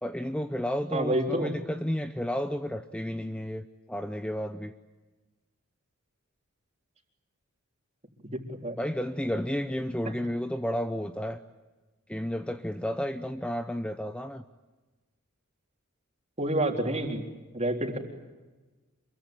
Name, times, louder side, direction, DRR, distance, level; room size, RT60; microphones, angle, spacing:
voice 1, 0.0-4.7 8.8-11.4 12.1-14.4, equal, 5° left, 8 dB, 0.8 m, -32 dB
voice 2, 0.9-1.5 8.3-8.8 16.4-17.2 17.5-18.0, right 1 dB, 30° right, 3 dB, 3.8 m, -28 dB
27.0 x 23.0 x 8.9 m, 1.2 s
head